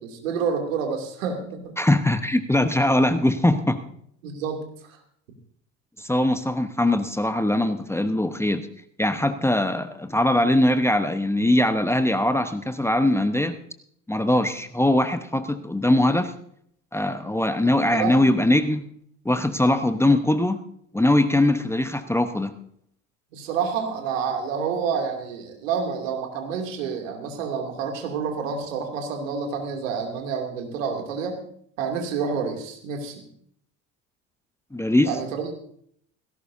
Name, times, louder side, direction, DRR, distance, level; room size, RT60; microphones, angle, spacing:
voice 1, 0.0-1.8 4.2-4.6 4.9-5.0 17.9-18.2 23.3-31.4 31.8-33.3 35.0-35.7, right 6 dB, 75° right, 3 dB, 2.8 m, -28 dB
voice 2, 1.8-3.8 6.0-8.7 9.0-13.6 14.1-16.3 16.9-18.9 19.2-20.6 20.9-22.5 34.7-35.1, left 1 dB, 5° left, 9 dB, 1.0 m, -21 dB
18.0 x 16.5 x 2.7 m, 0.65 s
hypercardioid pair, 65°, 39 cm